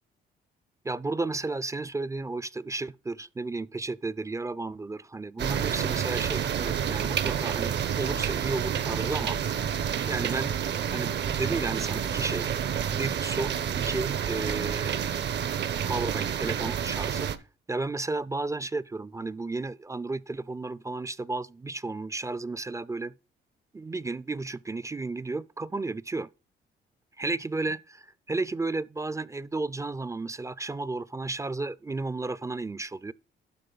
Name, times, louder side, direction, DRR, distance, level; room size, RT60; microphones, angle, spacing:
voice 1, 0.8-9.4 10.1-10.5 10.9-12.5 12.9-15.0 15.9-17.3 17.7-23.1 23.7-26.3 27.2-33.1, right 3 dB, 15° right, 0.3 m, -33 dB
sound 1, 5.4-17.4, right 8 dB, 60° right, 0.8 m, -29 dB
12.0 x 4.5 x 3.9 m
cardioid pair, 90°, 20 cm